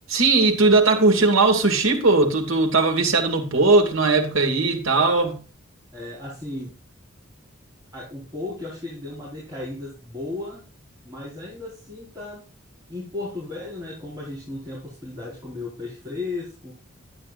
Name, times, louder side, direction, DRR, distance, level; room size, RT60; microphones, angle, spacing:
voice 1, 0.1-5.4, right 3 dB, 80° right, 2.3 m, -19 dB
voice 2, 5.9-6.8 7.9-10.6 11.0-12.5 12.9-16.7, left 2 dB, 20° right, 4.5 m, -35 dB
11.5 x 10.0 x 2.5 m
head